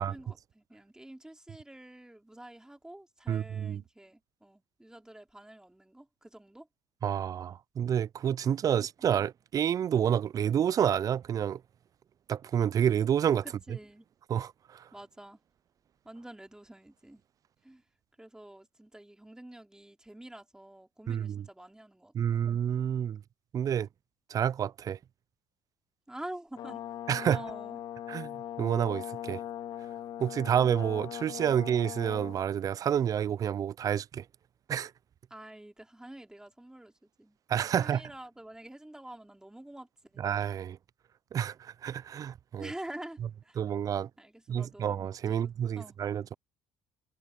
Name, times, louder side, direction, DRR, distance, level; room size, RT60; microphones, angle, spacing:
voice 1, 0.0-6.7 13.4-14.1 14.9-15.4 16.0-17.2 17.6-17.8 18.2-22.5 26.1-26.8 27.2-27.8 35.3-37.4 37.8-40.3 42.6-43.6 44.2-44.9 45.3-46.0, right 1 dB, 5° right, 3.8 m, -47 dB
voice 2, 3.3-3.8 7.0-11.6 12.3-13.4 14.3-14.8 21.1-21.4 22.1-23.2 23.5-23.9 24.3-25.0 27.1-27.4 28.1-29.4 30.2-34.2 34.7-34.9 37.5-38.0 40.2-40.8 41.3-42.7 43.6-44.1 44.5-46.3, right 9 dB, 40° right, 0.3 m, -29 dB
Brass instrument, 26.6-32.4, left 11 dB, 60° left, 2.8 m, -40 dB
supercardioid pair, 75°, 9 cm